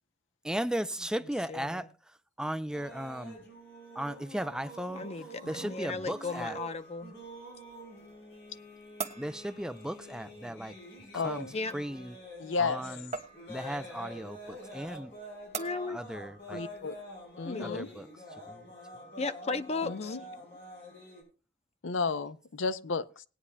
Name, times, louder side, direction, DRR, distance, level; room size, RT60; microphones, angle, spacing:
voice 1, 0.4-1.9 2.4-3.4 4.0-5.0 5.5-6.6 9.2-10.7 11.2-11.5 11.7-12.2 12.6-13.1 13.5-15.1 15.9-16.6 17.6-18.1 18.5-18.6, right 1 dB, 5° right, 0.4 m, -36 dB
voice 2, 1.5-1.9 4.9-7.1 11.5-11.8 15.6-16.0 17.4-17.8 19.2-20.2, left 3 dB, 35° left, 0.7 m, -35 dB
sound 1, 2.7-21.2, equal, 65° left, 6.3 m, -47 dB
voice 3, 5.4-5.7 11.1-11.6 12.4-12.9 16.5-17.0 17.4-17.9 19.8-20.2 21.8-23.2, left 4 dB, 85° left, 0.6 m, -33 dB
sound 2, 6.6-17.5, right 5 dB, 40° right, 1.2 m, -47 dB
19.5 x 9.7 x 2.2 m
head